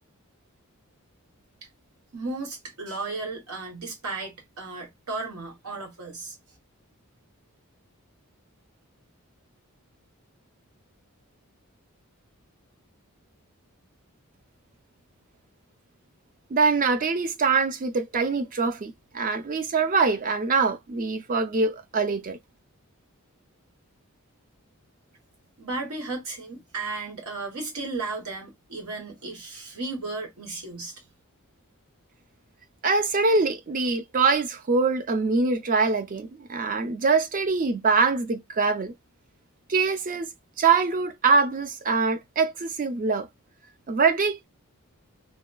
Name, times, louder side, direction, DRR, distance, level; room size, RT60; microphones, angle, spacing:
voice 1, 2.1-6.4 25.6-31.0, right 3 dB, 90° right, 1.1 m, -34 dB
voice 2, 16.5-22.4 32.8-38.9 39.7-40.3 40.6-43.3 43.9-44.5, right 4 dB, 40° right, 0.4 m, -24 dB
2.8 x 2.2 x 2.2 m
head